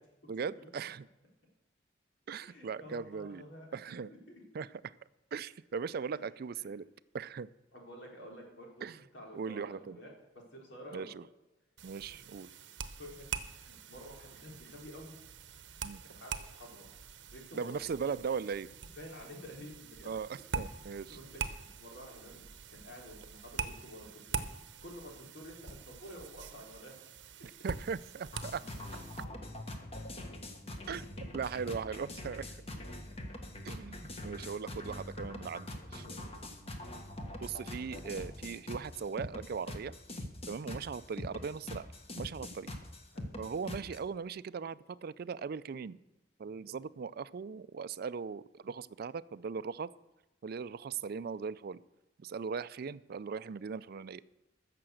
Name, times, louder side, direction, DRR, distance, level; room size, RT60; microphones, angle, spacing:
voice 1, 0.3-1.1 2.3-3.4 3.7-4.1 4.5-4.7 5.3-6.8 7.1-7.5 8.8-9.0 9.3-10.0 10.9-11.2 11.8-12.5 15.8-16.0 17.5-18.7 20.1-21.2 27.6-28.6 30.9-32.6 33.6-36.1 37.4-39.9 40.5-41.9 42.2-42.7 43.4-46.0 46.4-49.9 50.4-51.8 52.2-54.2, right 6 dB, 55° right, 17 dB, 0.4 m, -39 dB
voice 2, 2.4-3.7 4.1-4.2 6.6-6.7 7.7-11.1 13.0-13.3 13.5-15.1 15.6-16.9 17.3-17.8 19.0-20.1 20.8-22.4 22.7-24.4 24.8-26.9 34.1-34.6 35.7-36.2 43.1-43.3, equal, 90° left, -1 dB, 3.7 m, -50 dB
sound 1, 11.8-29.3, right 5 dB, 80° right, 0.8 m, -44 dB
sound 2, 28.3-44.0, left 1 dB, 35° left, 1.4 m, -43 dB
15.0 x 6.8 x 6.4 m, 1.0 s
head